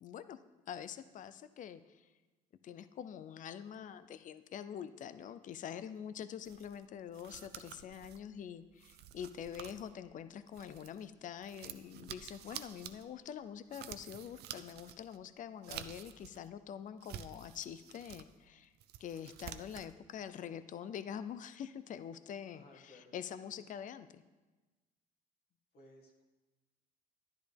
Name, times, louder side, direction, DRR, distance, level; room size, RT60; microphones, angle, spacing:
voice 1, 0.0-2.1 2.6-18.7 19.0-24.2, left 8 dB, 50° left, 13 dB, 0.5 m, -45 dB
sound 1, 6.4-11.1 11.4-16.5 16.9-18.3 18.6-19.9, right 11 dB, 75° right, 0.5 m, -50 dB
voice 2, 22.5-23.1 25.7-26.2, left 1 dB, 70° left, -2 dB, 1.9 m, -59 dB
11.5 x 10.5 x 3.4 m, 1.2 s
cardioid pair, 100°, 17 cm